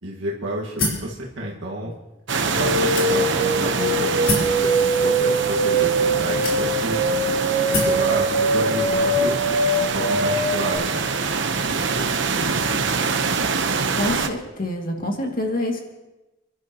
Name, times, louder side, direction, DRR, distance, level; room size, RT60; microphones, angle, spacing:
voice 1, 0.0-1.9 2.4-7.0 7.6-9.4 9.9-11.0 11.7-12.0 12.4-12.8, right 1 dB, 90° right, -3 dB, 1.7 m, -30 dB
sound 1, 0.8-1.1 1.9-2.0 2.9-3.5 4.3-4.6 5.5-5.6 6.4-7.0 7.7-8.0, left 2 dB, 90° left, 4.0 m, -25 dB
sound 2, 2.3-14.3, right 4 dB, 70° right, 1.0 m, -25 dB
sound 3, 2.5-10.8, right 2 dB, 30° left, 6.6 m, -22 dB
voice 2, 13.9-15.8, left 1 dB, 50° left, 1 dB, 2.3 m, -26 dB
29.5 x 11.5 x 3.0 m, 1.1 s
head